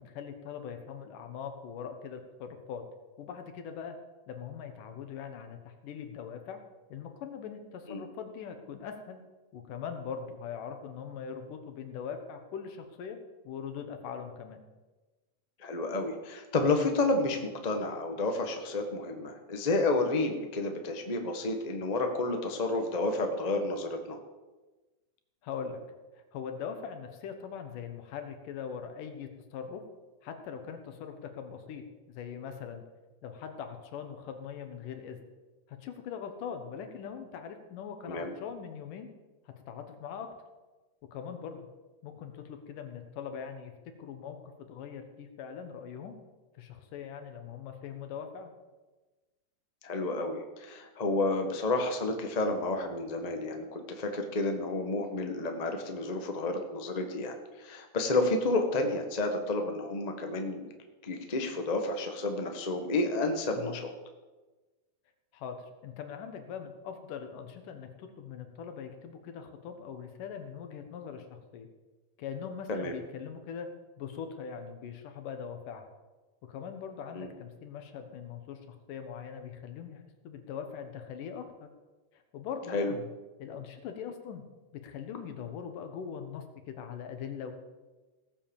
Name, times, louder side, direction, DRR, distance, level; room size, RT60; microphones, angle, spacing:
voice 1, 0.0-2.8 3.2-4.0 4.3-6.6 6.9-9.2 9.5-13.2 13.4-14.6 25.4-25.8 26.3-29.8 30.2-32.8 33.2-35.2 35.7-39.1 39.5-40.3 41.0-41.7 42.0-46.2 46.5-48.5 63.6-63.8 65.3-65.6 65.8-71.7 72.2-73.7 74.0-75.8 76.4-81.7 82.1-83.1 83.4-84.4 84.7-87.5, left 7 dB, 90° left, 6 dB, 3.0 m, -41 dB
voice 2, 15.6-24.2 38.1-38.3 49.8-60.7 61.0-63.9 72.7-73.0 77.1-77.3 82.7-82.9, left 2 dB, 55° left, 4 dB, 0.4 m, -30 dB
17.5 x 7.4 x 7.2 m, 1.2 s
omnidirectional pair, 3.6 m